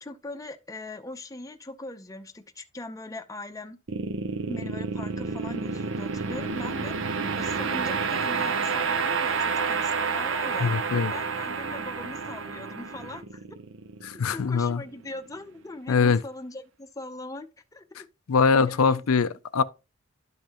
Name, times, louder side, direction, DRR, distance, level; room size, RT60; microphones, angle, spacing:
voice 1, 0.0-3.8 4.5-10.8 11.1-13.4 14.3-17.5 17.7-17.8 18.6-19.0, left 2 dB, 15° left, 0.6 m, -40 dB
sound 1, 3.9-15.1, right 5 dB, 60° right, 0.7 m, -30 dB
voice 2, 10.6-11.1 14.0-14.8 15.9-16.2 18.3-19.6, left 5 dB, 80° left, 0.5 m, -22 dB
11.5 x 5.4 x 2.9 m
head